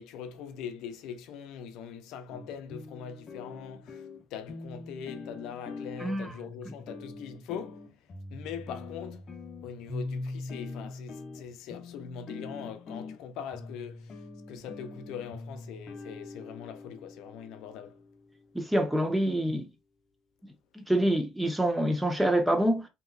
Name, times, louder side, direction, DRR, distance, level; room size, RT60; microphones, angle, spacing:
voice 1, 0.0-7.9 8.3-9.3 9.6-18.0, left 7 dB, 75° left, 0.6 m, -42 dB
sound 1, 2.3-18.5, left 3 dB, 40° left, 0.8 m, -43 dB
voice 2, 18.5-19.7 20.7-22.9, right 1 dB, 5° right, 0.7 m, -26 dB
3.2 x 2.9 x 2.4 m
cardioid pair, 135°, 0 cm